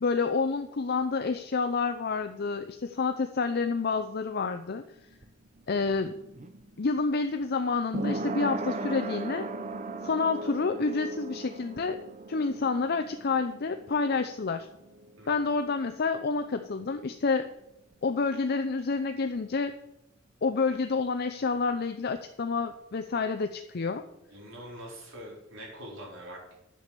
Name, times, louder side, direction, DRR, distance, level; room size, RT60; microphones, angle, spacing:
voice 1, 0.0-4.8 5.7-6.2 6.8-9.5 10.0-12.0 12.3-14.7 15.3-17.5 18.0-19.7 20.4-24.0, left 4 dB, 55° left, 8 dB, 0.6 m, -29 dB
sound 1, 4.9-16.4 16.6-16.7, right 2 dB, 40° right, 0.8 m, -38 dB
voice 2, 24.1-26.5, equal, 85° right, -3 dB, 4.3 m, -44 dB
9.3 x 6.9 x 7.4 m, 0.86 s
head